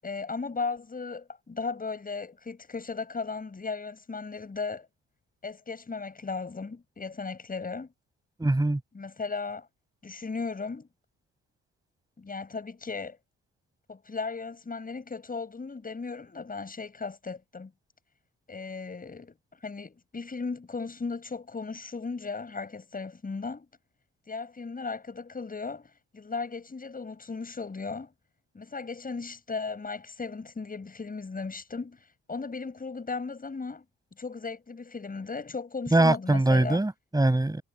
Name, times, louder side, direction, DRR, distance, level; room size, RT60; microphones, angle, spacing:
voice 1, 0.0-4.9 5.4-7.9 8.9-9.7 10.0-10.9 12.2-13.2 13.9-17.7 18.5-19.4 19.6-23.7 24.3-28.1 28.5-33.8 34.2-36.8, left 4 dB, 30° left, 7.4 m, -36 dB
voice 2, 8.4-8.8 35.9-37.6, right 2 dB, 10° right, 7.3 m, -22 dB
cardioid pair, 90°, 30 cm